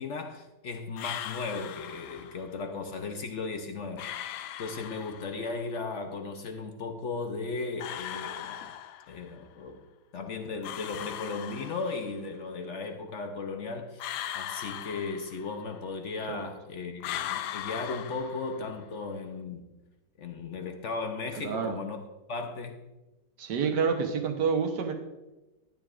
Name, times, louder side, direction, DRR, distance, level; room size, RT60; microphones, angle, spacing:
voice 1, 0.0-4.1 4.6-8.7 9.1-9.8 10.1-14.1 14.3-19.7 20.2-22.0 22.3-22.8, left 4 dB, 65° left, 0.7 m, -36 dB
sound 1, 1.0-2.5 4.0-5.5 7.8-9.3 10.6-12.2 14.0-15.7 17.0-18.9, left 11 dB, 90° left, 1.3 m, -39 dB
voice 2, 21.4-21.8 23.4-24.9, right 6 dB, 65° right, 1.5 m, -28 dB
12.5 x 9.7 x 2.4 m
omnidirectional pair, 2.0 m